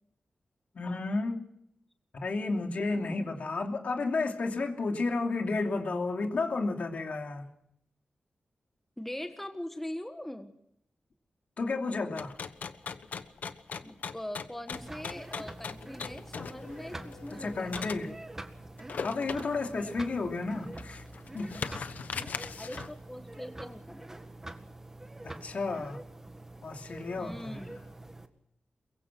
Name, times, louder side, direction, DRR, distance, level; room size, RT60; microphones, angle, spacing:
voice 1, 0.7-1.5 2.1-7.5 11.6-12.4 17.3-18.1 19.0-21.0 21.3-21.9 25.2-26.0 26.6-27.7, left 3 dB, 60° left, 2.9 m, -32 dB
voice 2, 9.0-10.5 13.8-18.1 22.5-24.1 27.2-27.8, left 1 dB, 10° left, 1.5 m, -42 dB
sound 1, 12.2-18.0 18.8-19.7 20.2-20.3 20.7-23.0, left 6 dB, 80° left, 1.1 m, -40 dB
sound 2, 14.7-28.3, right 2 dB, 15° right, 1.8 m, -46 dB
23.0 x 22.5 x 6.1 m
wide cardioid pair, 115°, 3 cm